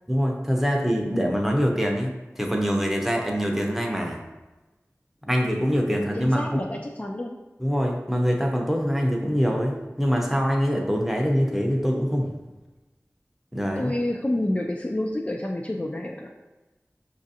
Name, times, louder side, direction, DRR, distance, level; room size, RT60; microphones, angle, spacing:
voice 1, 0.1-4.2 5.3-6.7 7.6-12.3 13.5-13.9, equal, 5° right, 0 dB, 0.7 m, -24 dB
voice 2, 6.1-7.4 13.8-16.3, left 1 dB, 25° left, 0 dB, 0.4 m, -28 dB
5.8 x 2.5 x 2.7 m, 1.1 s
wide cardioid pair, 40°, 5 cm